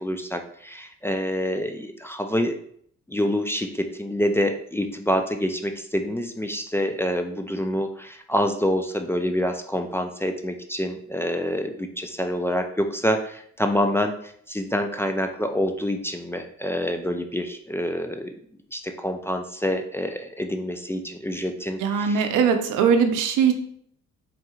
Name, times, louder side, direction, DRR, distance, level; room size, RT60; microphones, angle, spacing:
voice 1, 0.0-2.5 3.1-18.3 18.7-22.3, equal, 10° left, 5 dB, 0.3 m, -27 dB
voice 2, 21.8-23.5, right 6 dB, 90° right, 6 dB, 0.6 m, -20 dB
4.2 x 3.8 x 2.3 m, 0.64 s
cardioid pair, 90°, 30 cm